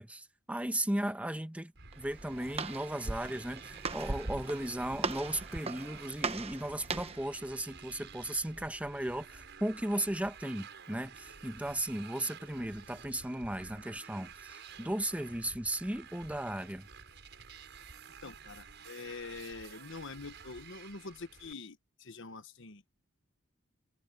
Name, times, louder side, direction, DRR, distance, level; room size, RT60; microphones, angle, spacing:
voice 1, 0.0-16.9, right 1 dB, 5° right, 1.1 m, -36 dB
Motorcycle, 1.8-21.5, right 6 dB, 60° right, 6.1 m, -51 dB
Walk footsteps, 1.9-7.3, right 4 dB, 30° right, 1.0 m, -39 dB
voice 2, 18.2-22.8, left 4 dB, 65° left, 1.2 m, -45 dB
head